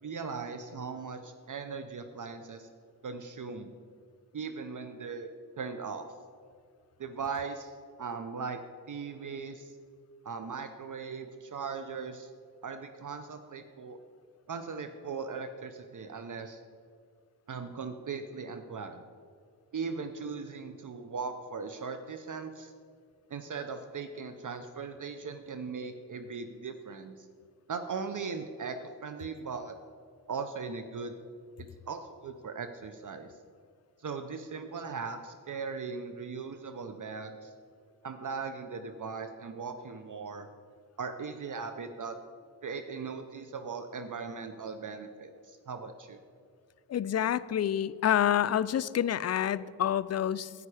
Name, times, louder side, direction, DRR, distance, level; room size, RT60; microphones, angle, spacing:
voice 1, 0.0-2.7 3.0-3.7 4.3-6.1 7.0-8.6 8.9-9.7 10.2-12.3 12.6-14.0 14.5-16.6 17.5-19.0 19.7-22.7 23.3-27.3 27.7-29.8 30.3-31.2 31.9-33.3 34.0-37.5 38.0-40.5 41.0-42.2 42.6-46.2, right 5 dB, 50° right, 8 dB, 0.7 m, -39 dB
voice 2, 46.9-50.5, left 10 dB, 40° left, 16 dB, 0.4 m, -28 dB
10.0 x 9.6 x 4.9 m, 2.2 s
cardioid pair, 55°, 40 cm